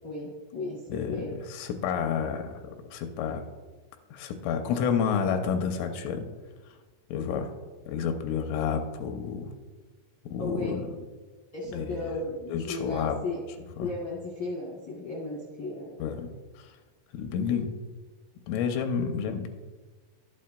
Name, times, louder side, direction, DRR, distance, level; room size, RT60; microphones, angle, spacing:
voice 1, 0.0-1.3 7.3-7.4 10.4-10.8 11.5-13.4 13.8-15.9, left 2 dB, 55° left, -5 dB, 1.3 m, -35 dB
voice 2, 0.9-2.6 2.9-3.4 4.1-6.3 7.1-7.5 7.9-9.5 10.3-10.7 11.7-12.0 12.5-13.2 13.8-13.9 16.0-16.3 16.6-16.7 17.1-17.7 18.5-19.5, left 7 dB, 85° left, 5 dB, 3.0 m, -30 dB
12.0 x 8.5 x 2.2 m, 1.3 s
omnidirectional pair, 5.9 m